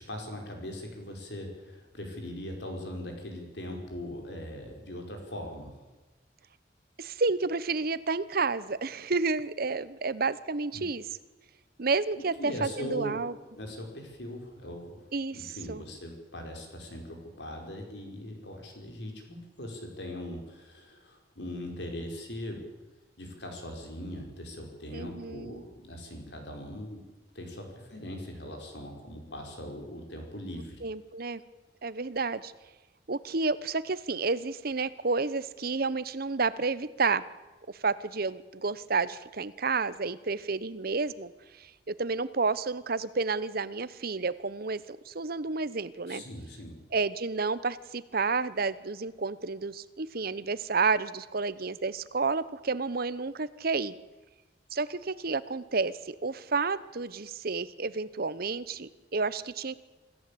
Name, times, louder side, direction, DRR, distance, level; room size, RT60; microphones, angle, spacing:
voice 1, 0.1-5.8 10.7-10.8 12.4-13.2 13.5-15.0 15.3-22.6 23.2-27.0 27.3-30.9 46.1-46.8, left 1 dB, 70° left, 3 dB, 5.2 m, -40 dB
voice 2, 7.0-11.0 11.8-13.3 15.1-15.8 24.9-25.6 30.8-31.4 31.8-32.5 33.1-37.3 37.7-41.3 41.6-46.2 46.9-53.9 54.7-59.7, right 4 dB, 55° right, 16 dB, 1.0 m, -30 dB
26.0 x 14.0 x 8.6 m, 1.2 s
head